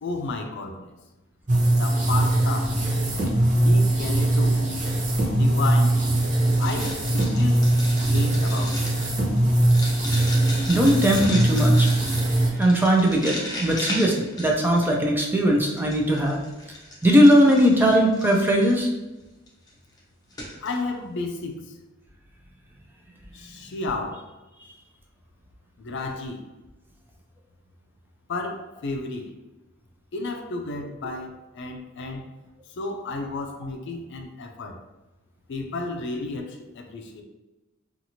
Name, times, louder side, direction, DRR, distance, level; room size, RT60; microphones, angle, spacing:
voice 1, 0.0-0.9 1.7-2.8 3.6-4.6 5.3-6.1 6.6-7.7 8.0-8.9 20.6-21.7 23.3-24.3 25.8-26.4 28.3-29.4 30.1-32.2 32.7-34.8 35.5-37.2, left 3 dB, 60° left, 4 dB, 0.4 m, -32 dB
sound 1, 1.5-12.5, right 1 dB, 40° right, 0.7 m, -21 dB
sound 2, 6.5-15.1 15.6-18.8 19.5-19.7 20.0-20.1 20.3-20.7, left 1 dB, 20° left, 0.7 m, -36 dB
voice 2, 10.7-16.4 17.0-18.9, equal, 10° right, 0 dB, 0.4 m, -19 dB
2.8 x 2.5 x 2.7 m, 1.1 s
head